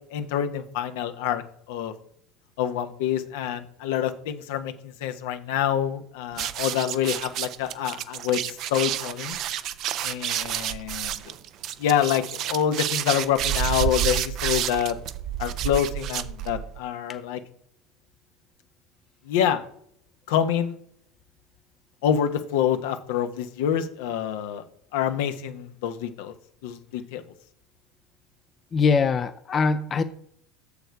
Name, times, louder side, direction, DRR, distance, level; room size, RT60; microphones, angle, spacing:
voice 1, 0.1-1.4 1.7-1.9 2.6-9.4 10.0-11.2 11.8-15.0 15.4-17.4 19.3-19.6 20.3-20.7 22.0-24.6 24.9-26.3 26.6-27.2, left 9 dB, 75° left, 8 dB, 0.9 m, -26 dB
sound 1, 6.3-16.8, right 11 dB, 55° right, 0.6 m, -29 dB
voice 2, 28.7-30.0, left 5 dB, 35° left, 10 dB, 0.5 m, -22 dB
6.9 x 6.8 x 4.6 m, 0.68 s
hypercardioid pair, 90°, 0 cm